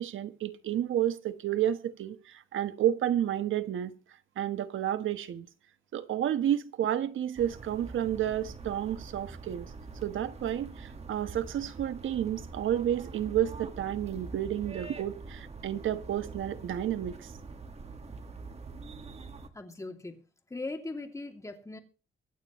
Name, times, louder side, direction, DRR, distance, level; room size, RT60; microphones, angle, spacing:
voice 1, 0.0-3.9 4.4-5.5 5.9-9.7 10.0-17.3, right 11 dB, 80° right, 1.2 m, -31 dB
sound 1, 7.4-19.5, right 3 dB, 30° right, 1.8 m, -44 dB
voice 2, 19.5-21.8, left 2 dB, 15° left, 2.7 m, -40 dB
24.5 x 8.8 x 3.2 m
cardioid pair, 120°, 20 cm